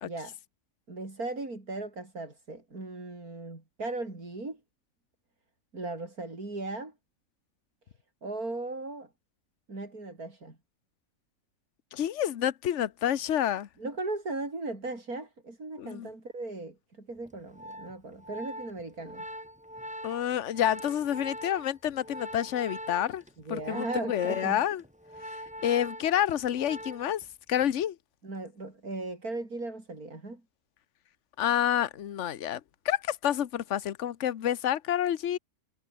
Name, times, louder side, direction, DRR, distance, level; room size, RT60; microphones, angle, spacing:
voice 1, 0.0-0.4 0.9-4.6 5.7-6.9 8.2-9.1 9.7-10.6 13.8-19.2 23.5-24.6 28.2-30.4, right 2 dB, 85° right, 5.8 m, -37 dB
voice 2, 11.9-13.7 15.8-16.1 20.0-23.2 23.5-24.8 25.6-28.0 31.4-35.4, left 10 dB, 60° left, 1.2 m, -29 dB
Organ, 17.2-27.3 27.5-27.8, equal, 5° right, 5.8 m, -43 dB
omnidirectional pair, 1.5 m